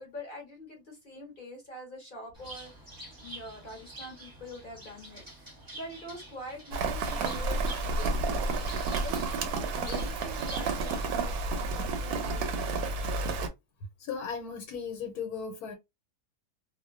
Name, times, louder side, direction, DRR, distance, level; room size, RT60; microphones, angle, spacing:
voice 1, 0.0-2.7 3.2-12.7, left 1 dB, 45° left, 0.8 m, -45 dB
Bird, 2.3-11.4, right 1 dB, 20° right, 0.6 m, -47 dB
Rain, 6.7-13.5, right 3 dB, 90° right, 1.1 m, -31 dB
voice 2, 14.0-15.7, left 6 dB, 85° left, 1.1 m, -36 dB
2.5 x 2.1 x 2.3 m
omnidirectional pair, 1.6 m